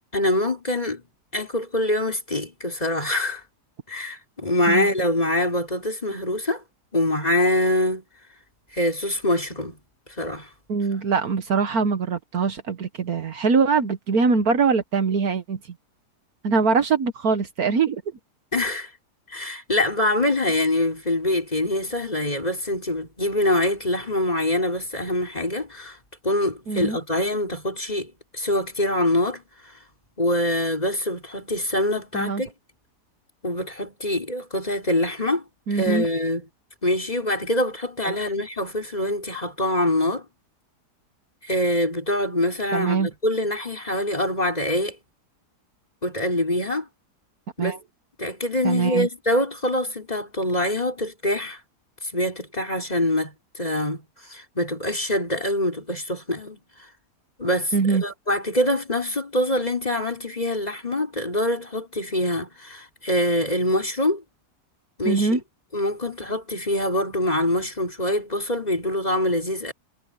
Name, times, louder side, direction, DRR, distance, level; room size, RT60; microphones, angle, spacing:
voice 1, 0.1-1.0 1.3-3.4 3.9-6.6 6.9-8.0 8.7-9.8 10.2-10.5 18.5-18.9 19.3-26.0 26.2-29.4 30.2-32.5 33.4-35.4 35.7-36.4 36.8-40.2 41.4-45.0 46.0-46.9 47.6-47.8 48.2-51.6 52.0-54.0 54.3-56.6 57.4-64.2 65.0-65.4 65.7-69.7, left 1 dB, 25° left, 4.8 m, -24 dB
voice 2, 10.7-15.6 16.4-18.0 26.7-27.0 32.1-32.4 35.7-36.1 38.0-38.4 42.7-43.1 47.6-47.8 48.6-49.1 57.7-58.0 65.0-65.4, right 5 dB, 65° right, 1.7 m, -22 dB
omnidirectional pair, 1.8 m